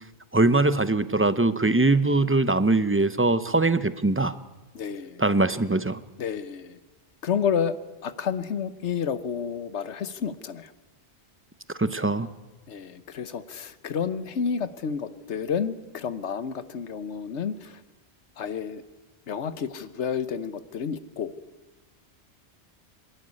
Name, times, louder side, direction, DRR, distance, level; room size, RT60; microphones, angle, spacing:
voice 1, 0.3-4.3 5.2-6.0 11.8-12.3, right 2 dB, 15° right, 14 dB, 0.5 m, -22 dB
voice 2, 4.7-5.3 6.2-6.8 7.2-7.8 8.0-10.7 12.7-17.8 18.4-18.8 19.3-21.3, left 7 dB, 90° left, 13 dB, 1.3 m, -30 dB
25.5 x 11.5 x 9.7 m, 1.2 s
omnidirectional pair, 1.1 m